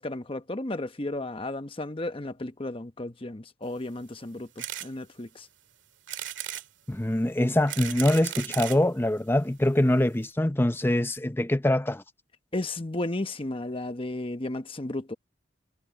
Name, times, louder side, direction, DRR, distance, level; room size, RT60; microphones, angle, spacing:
voice 1, 0.0-5.5 12.5-15.1, left 2 dB, 30° left, 1.1 m, -34 dB
sound 1, 4.6-4.9 5.4-5.5 6.1-6.7 7.4-8.8 9.6-9.7 9.9-10.0 10.2-10.3, right 12 dB, 80° right, 1.9 m, -36 dB
voice 2, 6.9-12.0, left 1 dB, 10° left, 0.6 m, -24 dB
head